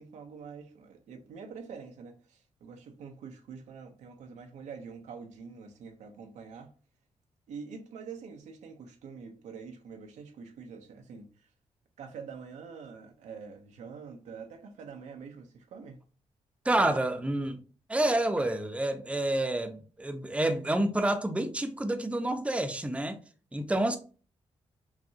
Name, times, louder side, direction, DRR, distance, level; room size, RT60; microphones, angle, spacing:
voice 1, 0.0-6.7 7.5-11.5 12.0-16.0, right 5 dB, 90° right, 0.7 m, -45 dB
voice 2, 16.6-17.6 17.9-23.2 23.5-24.0, right 1 dB, 10° right, 0.6 m, -28 dB
5.8 x 2.3 x 2.7 m
cardioid pair, 70°, 12 cm